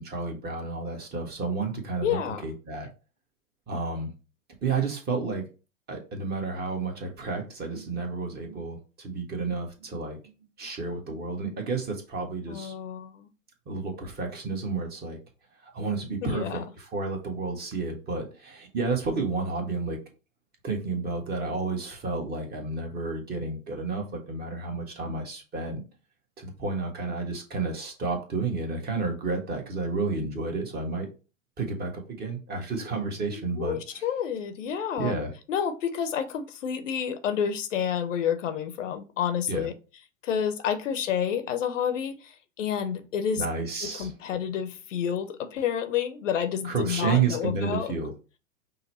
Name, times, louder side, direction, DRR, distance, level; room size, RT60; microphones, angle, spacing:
voice 1, 0.0-2.9 3.7-4.1 4.6-5.4 5.9-10.2 10.6-12.7 13.7-15.2 15.7-20.0 20.6-25.8 26.4-31.1 31.6-33.8 35.0-35.3 39.5-39.7 43.4-44.1 46.6-48.1, right 4 dB, 25° right, 1.3 m, -31 dB
voice 2, 2.0-2.4 12.5-13.3 16.2-16.6 33.3-35.1 35.5-39.7 40.2-43.4 43.8-47.9, left 8 dB, 65° left, 0.7 m, -29 dB
5.4 x 2.1 x 4.0 m
figure-of-eight pair, 100°, 40 cm